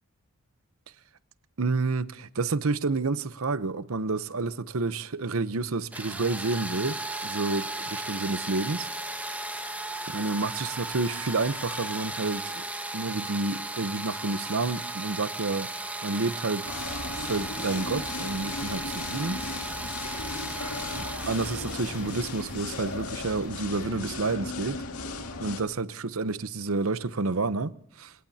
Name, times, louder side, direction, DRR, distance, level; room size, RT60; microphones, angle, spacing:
voice 1, 1.6-9.3 10.1-12.7 12.9-15.7 16.0-16.7 17.2-19.4 20.9-24.8 25.4-28.1, right 3 dB, 70° right, 0.8 m, -30 dB
sound 1, 5.9-23.6, right 2 dB, 5° right, 1.4 m, -36 dB
sound 2, 16.6-25.6, left 3 dB, 85° left, 2.0 m, -36 dB
27.5 x 18.0 x 2.8 m
head